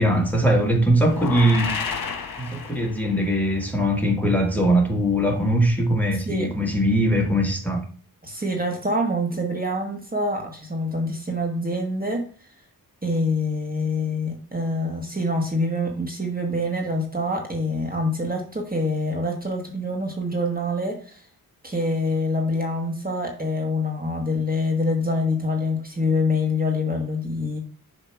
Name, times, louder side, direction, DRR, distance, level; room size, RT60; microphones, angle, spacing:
voice 1, 0.0-1.8 2.4-7.8, right 1 dB, 5° left, 0 dB, 1.6 m, -21 dB
sound 1, 1.0-3.3, left 5 dB, 65° left, 1.1 m, -31 dB
voice 2, 6.1-6.5 8.2-12.2 13.0-21.2 21.6-27.6, left 1 dB, 25° right, 1 dB, 1.4 m, -25 dB
6.8 x 2.9 x 5.8 m, 0.42 s
cardioid pair, 80°, 37 cm